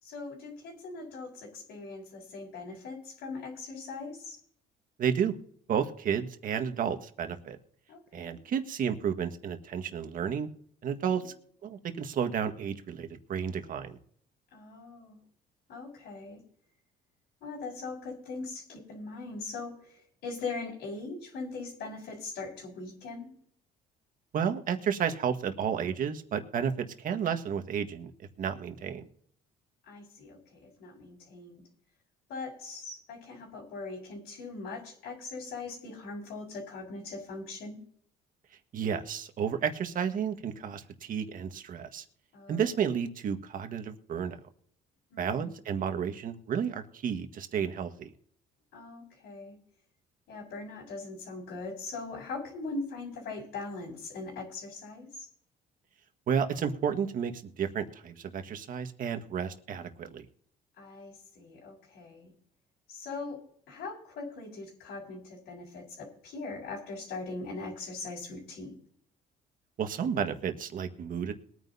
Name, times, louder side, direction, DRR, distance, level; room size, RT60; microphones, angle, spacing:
voice 1, 0.0-4.4 7.9-8.4 10.9-11.3 14.5-15.2 15.7-16.4 17.4-23.3 29.9-31.6 32.3-37.8 42.3-42.6 45.1-45.4 48.7-49.6 50.3-55.3 60.8-62.3 62.9-68.8, left 3 dB, 80° left, -3 dB, 4.3 m, -41 dB
voice 2, 5.0-5.3 5.7-7.6 8.1-10.5 10.8-11.3 11.6-14.0 24.3-28.1 28.4-29.0 38.7-42.0 42.5-44.4 45.2-48.1 56.3-60.2 69.8-71.3, right 7 dB, 55° right, 7 dB, 1.6 m, -32 dB
22.0 x 9.5 x 2.8 m, 0.62 s
cardioid pair, 110°, 17 cm